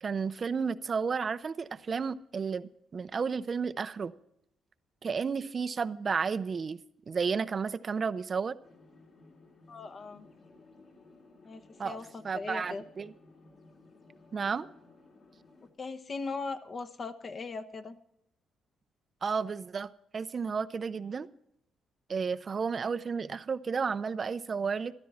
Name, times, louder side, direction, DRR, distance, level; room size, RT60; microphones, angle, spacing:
voice 1, 0.0-4.1 5.0-6.8 7.1-8.6 11.8-12.0 12.2-13.1 14.3-14.7 19.2-21.3 22.1-24.9, right 5 dB, 40° right, 0.5 m, -32 dB
sound 1, 8.6-15.7, left 3 dB, 55° left, 3.3 m, -58 dB
voice 2, 9.7-10.3 11.4-12.8 15.8-18.0, left 4 dB, 40° left, 1.0 m, -39 dB
14.0 x 12.5 x 4.2 m
cardioid pair, 90°, 0 cm